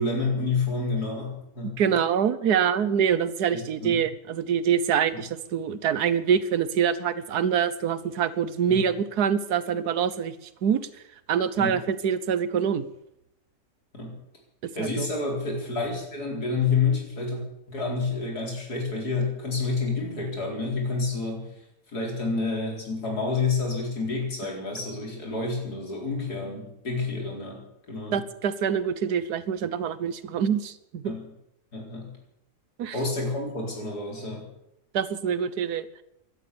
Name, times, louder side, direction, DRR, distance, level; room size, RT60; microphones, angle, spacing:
voice 1, 0.0-1.8 3.5-4.0 8.7-8.8 11.6-11.8 13.9-14.2 14.7-17.4 17.7-21.5 21.9-28.2 31.0-31.3 31.7-32.2 32.9-34.5, left 4 dB, 85° left, 0 dB, 5.0 m, -29 dB
voice 2, 1.8-10.3 10.6-10.8 11.3-12.8 14.8-15.1 28.1-31.1 32.8-33.0 34.9-35.9, right 8 dB, 90° right, 15 dB, 1.5 m, -25 dB
16.0 x 12.0 x 7.0 m, 0.81 s
omnidirectional pair, 1.6 m